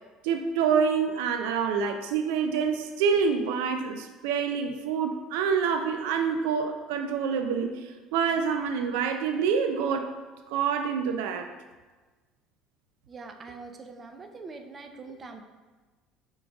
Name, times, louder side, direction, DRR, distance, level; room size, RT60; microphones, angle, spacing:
voice 1, 0.2-10.1 10.5-11.5, right 6 dB, 90° right, 6 dB, 0.4 m, -27 dB
voice 2, 13.1-15.4, right 4 dB, 25° right, 5 dB, 0.4 m, -43 dB
6.0 x 3.8 x 2.3 m, 1.3 s
cardioid pair, 120°, 0 cm